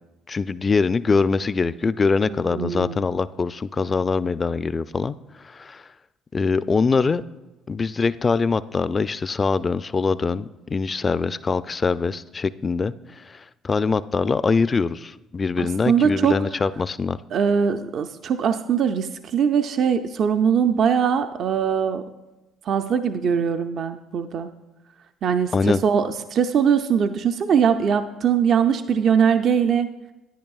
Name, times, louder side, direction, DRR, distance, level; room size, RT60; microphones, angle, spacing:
voice 1, 0.3-5.2 5.4-5.8 6.3-7.2 7.7-17.2 25.5-25.8, left 4 dB, 35° left, 16 dB, 0.3 m, -23 dB
voice 2, 2.3-3.1 15.6-16.4 17.3-22.0 22.7-24.5 25.2-29.9, right 7 dB, 55° right, 8 dB, 0.4 m, -21 dB
11.0 x 10.0 x 2.3 m, 1.0 s
hypercardioid pair, 55°, 0 cm